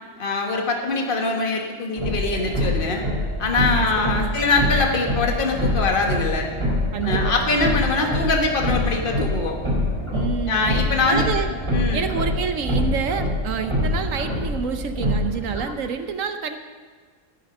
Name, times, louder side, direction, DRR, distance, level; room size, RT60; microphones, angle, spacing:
voice 1, 0.2-3.0 3.4-6.5 7.0-9.6 10.5-11.3 11.7-12.1, left 3 dB, 40° left, 1 dB, 1.6 m, -23 dB
sound 1, 2.0-15.6, left 1 dB, 20° right, 3.7 m, -25 dB
voice 2, 3.6-4.4 6.9-7.6 10.1-10.7 11.1-11.5 11.9-16.6, right 6 dB, 70° right, 8 dB, 1.1 m, -28 dB
15.5 x 9.4 x 5.4 m, 1.5 s
omnidirectional pair, 1.5 m